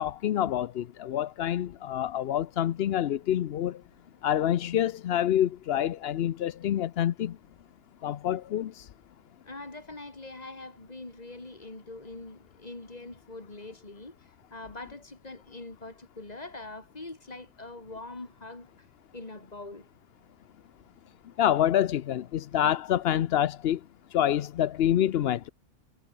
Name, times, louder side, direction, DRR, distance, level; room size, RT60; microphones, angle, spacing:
voice 1, 0.0-3.8 4.2-7.4 8.0-8.9 21.4-23.8 24.1-25.5, left 11 dB, 60° left, 0.7 m, -27 dB
voice 2, 9.4-14.2 14.5-18.9 19.1-19.9, left 2 dB, 25° left, 2.7 m, -43 dB
omnidirectional pair, 1.5 m